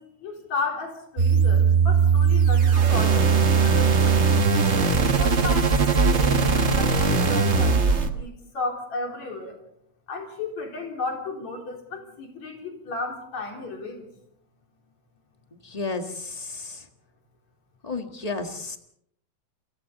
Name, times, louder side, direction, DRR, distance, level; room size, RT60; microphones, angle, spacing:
voice 1, 0.0-4.2 5.2-9.6 10.1-14.0, left 3 dB, 70° left, 1 dB, 5.1 m, -34 dB
sound 1, 1.2-8.1, right 5 dB, 50° right, 0.8 m, -19 dB
voice 2, 15.5-16.8 17.8-18.8, left 3 dB, 20° left, 5 dB, 1.0 m, -32 dB
29.0 x 22.0 x 4.0 m, 0.71 s
omnidirectional pair, 3.3 m